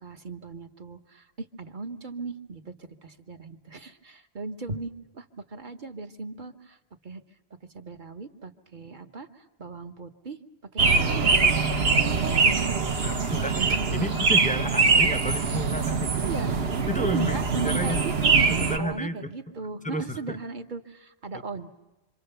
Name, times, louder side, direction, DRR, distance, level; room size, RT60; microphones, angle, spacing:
voice 1, 0.0-6.8 7.0-7.2 7.7-10.4 10.7-11.7 12.0-12.7 13.5-14.1 16.2-16.6 17.0-18.5 18.8-21.7, right 4 dB, 45° right, 6 dB, 1.3 m, -37 dB
sound 1, 10.8-18.8, right 4 dB, 60° right, 1.4 m, -23 dB
voice 2, 13.3-13.6 13.9-16.1 16.9-18.0 18.5-19.3 19.8-20.4, equal, 10° left, 9 dB, 0.8 m, -31 dB
27.0 x 26.0 x 6.8 m, 1.1 s
omnidirectional pair, 1.2 m